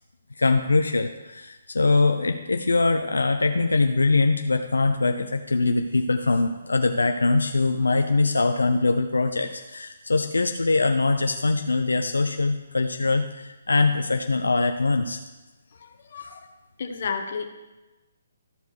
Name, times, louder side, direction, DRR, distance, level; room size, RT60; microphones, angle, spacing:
voice 1, 0.4-15.2, left 3 dB, 90° left, 5 dB, 0.6 m, -22 dB
voice 2, 15.7-16.5 16.8-17.4, left 5 dB, 55° left, 5 dB, 1.3 m, -32 dB
13.5 x 5.2 x 4.7 m, 1.1 s
hypercardioid pair, 145°, 0 cm